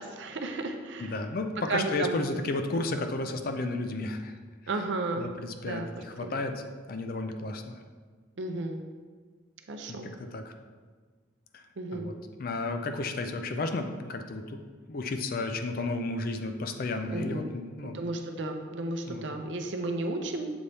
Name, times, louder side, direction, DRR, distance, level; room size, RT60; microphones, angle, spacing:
voice 1, 0.0-1.2 1.7-2.2 4.7-5.3 5.6-5.9 6.2-6.3 8.4-8.8 9.7-10.1 11.8-12.1 17.1-17.5 17.8-20.5, right 2 dB, 65° right, 4 dB, 0.6 m, -33 dB
voice 2, 1.0-4.3 5.2-7.8 9.9-10.5 11.5-11.6 11.9-14.6 14.9-18.0 19.1-19.3, left 2 dB, 45° left, 6 dB, 0.4 m, -33 dB
7.1 x 4.1 x 3.4 m, 1.5 s
head